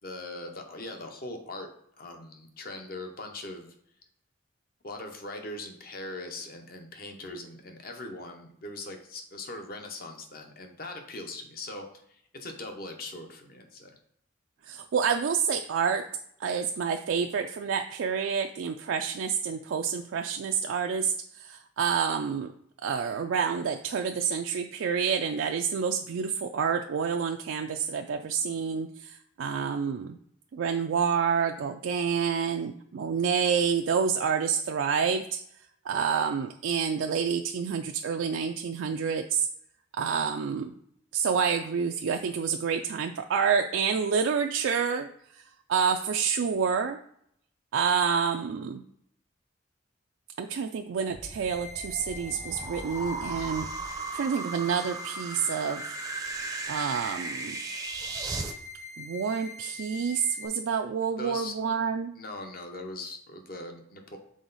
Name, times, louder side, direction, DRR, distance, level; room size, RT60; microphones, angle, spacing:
voice 1, 0.0-1.7 2.0-3.7 4.8-14.0 61.1-61.6 62.1-64.2, left 2 dB, 50° left, 4 dB, 0.9 m, -40 dB
voice 2, 14.7-16.1 16.4-21.1 21.4-22.5 22.8-30.2 30.5-35.4 35.9-39.5 40.0-40.8 41.1-45.1 45.7-47.0 47.7-48.8 50.4-53.7 54.1-56.0 56.7-57.6 59.0-62.1, right 6 dB, 90° right, 4 dB, 0.4 m, -28 dB
sound 1, 51.1-58.5, right 3 dB, 20° right, 0.5 m, -37 dB
sound 2, 51.5-60.5, left 3 dB, 35° left, 1.4 m, -44 dB
6.3 x 3.8 x 4.0 m, 0.70 s
head